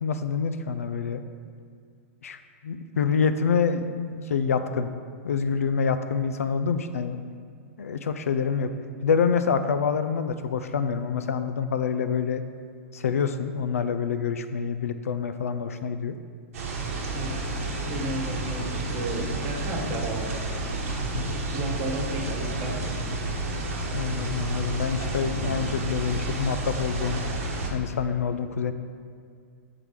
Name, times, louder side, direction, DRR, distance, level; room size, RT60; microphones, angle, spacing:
voice 1, 0.0-1.2 2.2-4.9 5.2-7.2 7.8-8.7 9.0-12.4 12.9-16.2 21.1-21.4 23.9-27.2 27.7-28.7, left 6 dB, 85° left, 9 dB, 0.4 m, -26 dB
sound 1, 16.5-27.7, right 2 dB, 70° right, 1.0 m, -30 dB
voice 2, 17.1-20.8 21.5-22.9, right 1 dB, 40° right, 0 dB, 1.0 m, -33 dB
6.5 x 3.8 x 4.6 m, 2.3 s
hypercardioid pair, 110°, 8 cm